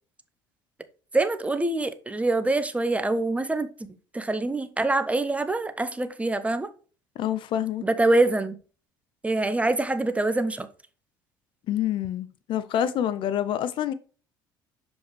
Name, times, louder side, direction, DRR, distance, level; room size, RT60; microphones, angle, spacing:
voice 1, 1.1-3.7 4.1-6.7 7.8-8.5 9.2-10.7, right 2 dB, 10° right, 0.8 m, -25 dB
voice 2, 7.2-7.9 11.7-13.9, left 10 dB, 50° left, 0.5 m, -27 dB
6.5 x 5.2 x 3.1 m
hypercardioid pair, 65°, 11 cm